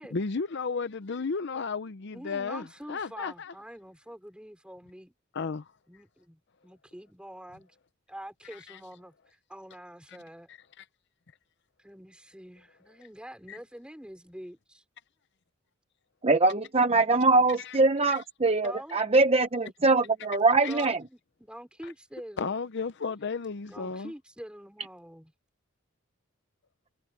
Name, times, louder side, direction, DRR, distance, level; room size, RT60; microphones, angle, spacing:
voice 1, 0.1-3.5 5.3-5.7 8.5-8.8 13.5-13.6 17.6-17.8 18.1-18.2 20.6-20.8 22.4-24.1, left 4 dB, 55° left, 0.6 m, -33 dB
voice 2, 2.1-5.1 5.9-7.7 8.1-9.1 9.5-10.5 11.8-14.8 18.6-19.0 20.7-22.5 23.7-25.3, equal, 5° right, 4.8 m, -45 dB
voice 3, 16.2-21.0, right 3 dB, 30° right, 0.8 m, -23 dB
head